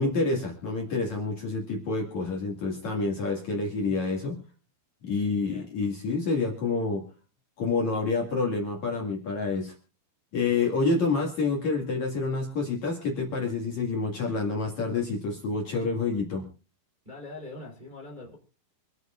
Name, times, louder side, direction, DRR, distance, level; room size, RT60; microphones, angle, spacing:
voice 1, 0.0-4.4 5.0-7.0 7.6-9.7 10.3-16.4, left 3 dB, 50° left, -1 dB, 2.9 m, -28 dB
voice 2, 17.0-18.4, left 2 dB, 10° right, -1 dB, 2.8 m, -42 dB
27.0 x 9.5 x 2.5 m, 0.34 s
omnidirectional pair, 5.2 m